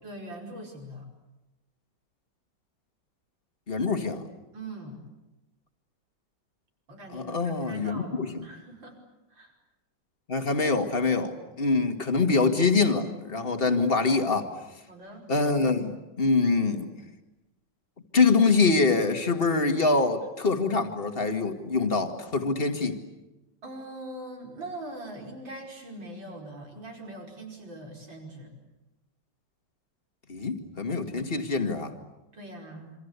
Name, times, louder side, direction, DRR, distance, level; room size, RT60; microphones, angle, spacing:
voice 1, 0.0-1.1 4.5-5.0 6.9-9.0 9.3-9.5 14.9-15.3 23.6-28.5 32.3-32.9, right 1 dB, 80° right, 1 dB, 5.9 m, -42 dB
voice 2, 3.7-4.2 7.1-8.4 10.3-14.5 15.3-16.9 18.1-23.0 30.3-31.9, left 4 dB, 30° left, 6 dB, 2.2 m, -25 dB
27.5 x 25.5 x 8.3 m, 1.0 s
omnidirectional pair, 2.0 m